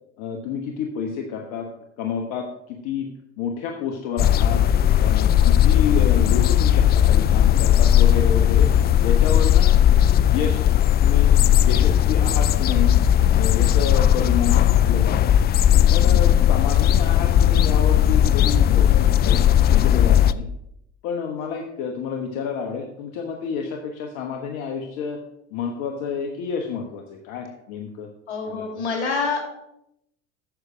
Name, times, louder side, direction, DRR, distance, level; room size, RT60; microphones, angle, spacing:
voice 1, 0.2-1.7 2.0-3.1 3.4-4.6 5.0-8.7 9.0-9.7 10.3-10.6 11.0-13.0 13.3-15.3 15.9-20.5 21.0-25.2 25.5-28.1 28.4-28.7, left 6 dB, 65° left, 3 dB, 1.2 m, -29 dB
sound 1, 4.2-20.3, left 10 dB, 30° left, 0.4 m, -17 dB
voice 2, 28.3-29.5, left 4 dB, 85° left, 1 dB, 2.7 m, -26 dB
9.6 x 6.7 x 4.9 m, 0.80 s
hypercardioid pair, 80°, 34 cm